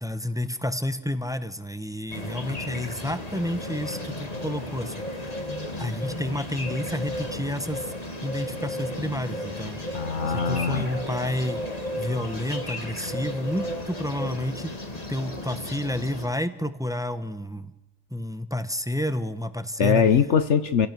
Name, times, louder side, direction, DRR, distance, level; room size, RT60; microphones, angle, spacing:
voice 1, 0.0-5.4 5.8-7.9 8.2-9.8 10.3-11.6 12.0-14.7 15.1-17.7 18.1-20.0, left 1 dB, 5° right, 11 dB, 0.9 m, -30 dB
sound 1, 2.1-16.3, left 1 dB, 30° left, 2.3 m, -34 dB
voice 2, 9.9-10.9 19.8-20.9, left 7 dB, 60° left, 11 dB, 1.2 m, -22 dB
29.5 x 17.0 x 6.9 m, 1.0 s
omnidirectional pair, 1.4 m